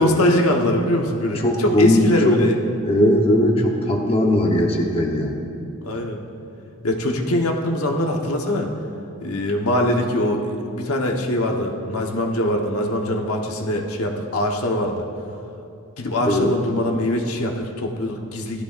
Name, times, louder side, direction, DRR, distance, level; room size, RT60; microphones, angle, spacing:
voice 1, 0.0-2.6 5.8-6.2 6.8-8.7 9.2-15.1 16.0-18.6, left 1 dB, 80° left, 1 dB, 1.2 m, -22 dB
voice 2, 1.3-2.4 2.8-5.4 16.2-16.5, left 1 dB, 25° left, 0 dB, 1.0 m, -19 dB
17.5 x 13.0 x 2.5 m, 2.6 s
head